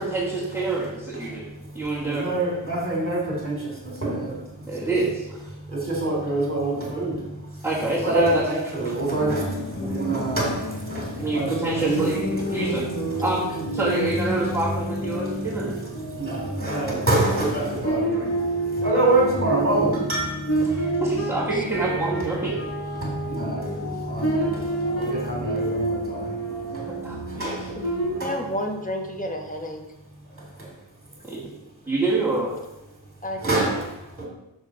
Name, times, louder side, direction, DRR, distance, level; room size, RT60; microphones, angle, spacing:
voice 1, 0.0-1.4 1.7-2.2 4.7-5.4 7.6-8.4 8.8-8.9 9.8-9.9 11.2-12.8 13.2-13.4 13.7-15.8 16.5-16.6 18.9-19.1 20.6-22.5 26.9-27.8 31.2-31.4 31.9-32.6, right 2 dB, 5° right, -11 dB, 2.7 m, -26 dB
voice 2, 1.1-4.9 5.5-7.7 8.0-12.1 12.4-12.7 14.3-14.4 15.1-21.0 22.0-22.2 22.6-26.4 26.6-26.9 27.3-28.4 30.2-30.7 33.4-34.3, right 2 dB, 25° right, -2 dB, 3.2 m, -27 dB
sound 1, 9.0-28.2, right 1 dB, 30° left, 1.8 m, -29 dB
voice 3, 28.2-29.8 33.2-33.8, equal, 15° left, 2 dB, 1.2 m, -31 dB
7.1 x 4.8 x 5.5 m, 0.93 s
wide cardioid pair, 90°, 46 cm